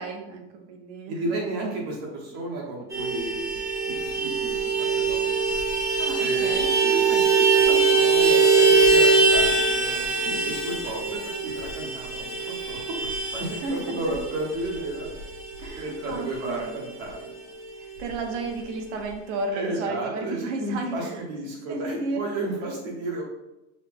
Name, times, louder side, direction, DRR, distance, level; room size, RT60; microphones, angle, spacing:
voice 1, 0.0-1.3 6.0-6.7 13.5-14.1 15.6-16.8 17.8-21.3 21.7-22.2, right 3 dB, 80° right, 3 dB, 0.9 m, -33 dB
voice 2, 1.1-3.4 3.8-5.5 6.2-15.1 15.7-17.3 19.5-23.2, right 2 dB, 50° right, -1 dB, 1.0 m, -33 dB
Vehicle horn car horn honking, 2.9-16.8 17.1-17.2 17.5-17.7 17.9-18.7, right 4 dB, 10° right, 0.5 m, -23 dB
5.4 x 2.1 x 3.4 m, 0.94 s
supercardioid pair, 175°, 35 cm